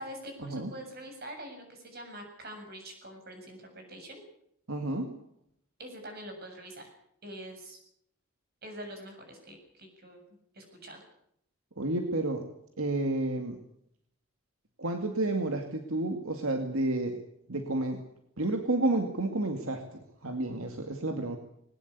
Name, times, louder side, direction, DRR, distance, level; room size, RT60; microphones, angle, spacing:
voice 1, 0.0-4.2 5.8-6.9 7.2-7.8 8.6-10.2 10.5-11.0, right 1 dB, 45° right, 4 dB, 7.4 m, -44 dB
voice 2, 4.7-5.1 11.8-12.4 12.8-13.6 14.8-17.2 17.5-18.0 18.4-19.8 20.2-21.4, right 2 dB, 75° right, 4 dB, 2.4 m, -30 dB
21.0 x 19.0 x 8.4 m, 0.72 s
head